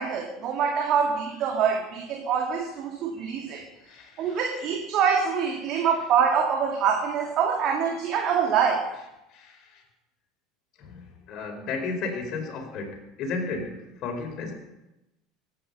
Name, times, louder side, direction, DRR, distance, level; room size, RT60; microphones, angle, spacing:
voice 1, 0.0-3.6 4.2-8.9, right 7 dB, 45° right, 3 dB, 2.1 m, -25 dB
voice 2, 3.5-4.5 5.7-5.9 9.3-9.8 10.8-14.5, left 4 dB, 45° left, 3 dB, 4.6 m, -34 dB
23.5 x 9.9 x 5.7 m, 0.95 s
figure-of-eight pair, 70°, 0 cm